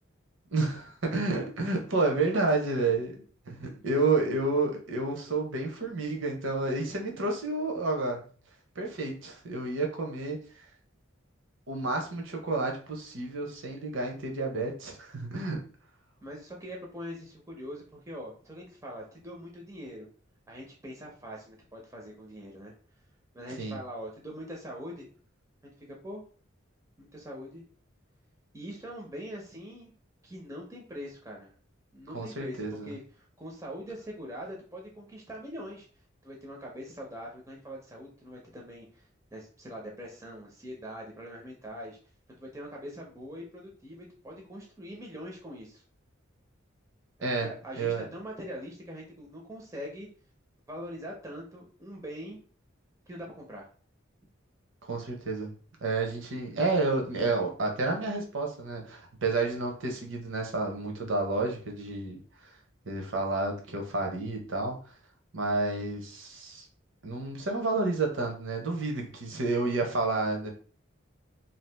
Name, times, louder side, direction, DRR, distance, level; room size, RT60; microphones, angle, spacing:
voice 1, 0.5-8.2 8.8-10.6 11.7-15.6 23.6-23.8 32.1-32.9 47.2-47.5 47.7-48.0 54.8-55.5 55.8-62.5 62.9-64.8 65.3-66.7 67.0-70.5, right 3 dB, 75° right, 2 dB, 0.8 m, -30 dB
voice 2, 16.2-20.1 20.5-22.7 23.3-25.1 25.6-26.2 27.0-27.6 28.5-29.9 30.2-31.5 31.9-32.6 32.8-35.9 36.2-39.0 39.3-42.0 42.3-45.8 47.2-50.1 50.7-52.4 53.1-53.7, equal, 15° right, -1 dB, 0.5 m, -42 dB
2.7 x 2.4 x 3.3 m, 0.41 s
head